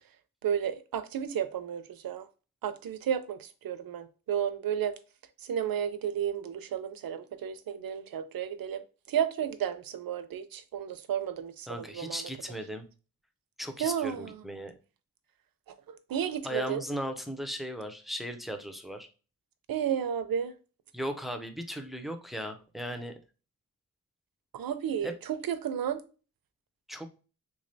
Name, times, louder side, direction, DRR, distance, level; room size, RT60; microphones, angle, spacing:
voice 1, 0.4-2.2 2.6-3.4 3.6-4.9 5.5-8.8 9.1-12.2 13.8-14.3 16.1-16.8 19.7-20.5 24.5-26.0, right 9 dB, 80° right, 0.5 m, -32 dB
voice 2, 11.7-12.8 13.6-14.7 16.4-19.1 20.9-23.1 25.0-25.1 26.9-27.1, equal, ahead, 0.4 m, -37 dB
3.5 x 3.1 x 2.6 m
wide cardioid pair, 160°, 34 cm